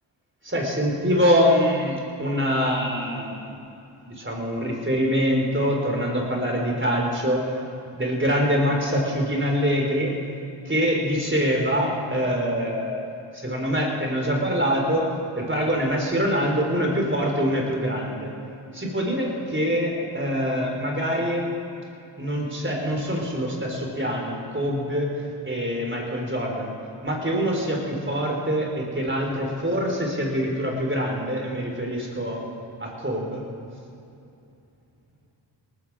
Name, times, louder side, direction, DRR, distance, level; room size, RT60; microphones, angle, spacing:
voice 1, 0.4-3.6 4.0-7.6 8.0-10.1 10.7-13.0 13.3-15.1 15.4-18.3 18.7-21.5 22.2-26.7 27.0-32.4 32.8-33.4, equal, 25° right, 0 dB, 4.1 m, -24 dB
19.0 x 13.5 x 4.8 m, 2.7 s
cardioid pair, 45°, 49 cm